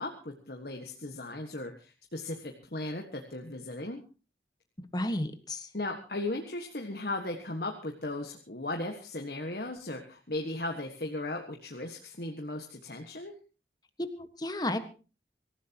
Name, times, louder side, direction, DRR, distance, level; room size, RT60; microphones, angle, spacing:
voice 1, 0.0-4.0 5.7-13.3, left 2 dB, 60° left, 2 dB, 1.6 m, -37 dB
voice 2, 4.8-5.7 14.2-14.8, left 1 dB, 20° left, 8 dB, 1.5 m, -32 dB
25.5 x 15.0 x 3.0 m, 0.35 s
head